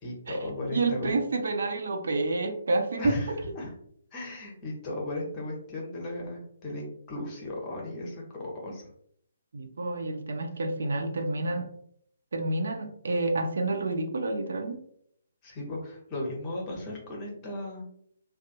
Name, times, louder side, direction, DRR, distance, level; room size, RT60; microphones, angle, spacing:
voice 1, 0.0-1.1 3.0-3.7 4.1-8.2 8.6-8.8 15.4-17.9, left 1 dB, 20° left, -2 dB, 0.8 m, -36 dB
voice 2, 0.7-3.2 9.5-11.7 12.3-14.8, right 2 dB, 55° right, 5 dB, 0.4 m, -29 dB
2.5 x 2.3 x 2.4 m, 0.68 s
figure-of-eight pair, 135°, 0 cm